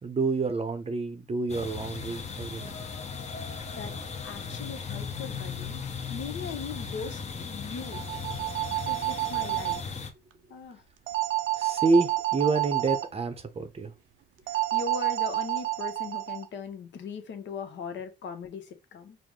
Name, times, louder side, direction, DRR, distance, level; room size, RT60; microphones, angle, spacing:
voice 1, 0.0-2.9 11.6-13.9, right 3 dB, 30° right, 0.6 m, -28 dB
sound 1, 1.5-10.1, left 5 dB, 35° left, 0.8 m, -37 dB
voice 2, 3.7-5.8 6.1-8.0 8.9-9.9 10.5-10.8 14.5-19.2, left 5 dB, 65° left, 0.8 m, -39 dB
sound 2, 7.8-9.8 11.1-13.1 14.5-16.4, right 17 dB, 80° right, 0.5 m, -29 dB
4.7 x 2.1 x 3.7 m
cardioid pair, 90°, 20 cm